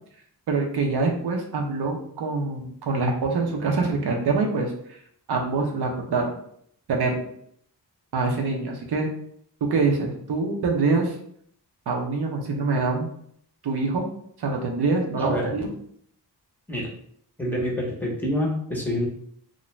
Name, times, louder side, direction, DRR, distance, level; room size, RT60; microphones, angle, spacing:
voice 1, 0.5-5.0 5.3-6.3 6.9-7.3 8.1-9.1 9.6-11.2 11.9-13.1 13.6-14.1 14.4-15.7, right 3 dB, 75° right, 1 dB, 0.6 m, -25 dB
voice 2, 15.2-15.5 16.7-16.9 17.4-19.1, left 1 dB, 5° left, -4 dB, 0.6 m, -27 dB
2.5 x 2.1 x 3.0 m, 0.66 s
wide cardioid pair, 135°, 40 cm